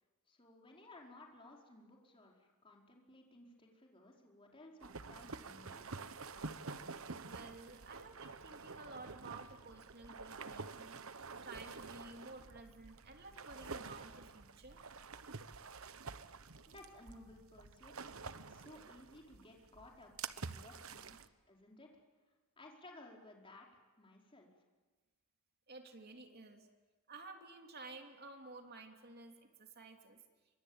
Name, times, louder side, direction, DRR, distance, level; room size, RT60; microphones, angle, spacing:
voice 1, 0.3-5.8 16.7-18.1 18.5-21.1 21.5-21.9 22.6-24.5, left 2 dB, 25° left, -1 dB, 4.7 m, -58 dB
sound 1, 4.8-21.3, right 4 dB, 75° right, 1.1 m, -49 dB
voice 2, 7.3-14.9 21.1-21.2 25.7-26.7 27.1-30.2, right 3 dB, 45° right, 4 dB, 3.0 m, -53 dB
26.5 x 24.5 x 8.8 m, 1.3 s
head